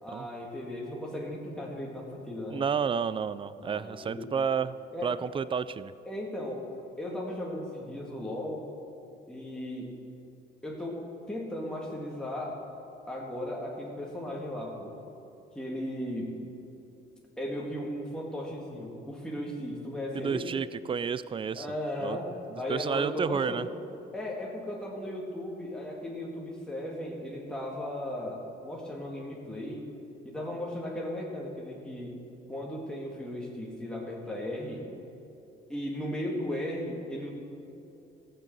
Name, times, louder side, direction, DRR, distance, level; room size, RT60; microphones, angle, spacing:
voice 1, 0.0-2.6 3.6-4.3 4.9-5.1 6.1-6.6 7.0-8.7 9.3-9.9 10.6-12.6 13.1-14.9 15.5-16.4 17.4-20.4 21.5-23.7 24.1-29.8 30.2-32.2 32.5-34.9 35.7-37.3, left 1 dB, 5° left, -3 dB, 1.9 m, -36 dB
voice 2, 2.5-4.7 5.0-5.9 20.1-21.7 22.0-22.2 22.5-23.7, right 6 dB, 25° right, 16 dB, 0.4 m, -30 dB
14.5 x 6.7 x 7.5 m, 2.7 s
cardioid pair, 90°, 20 cm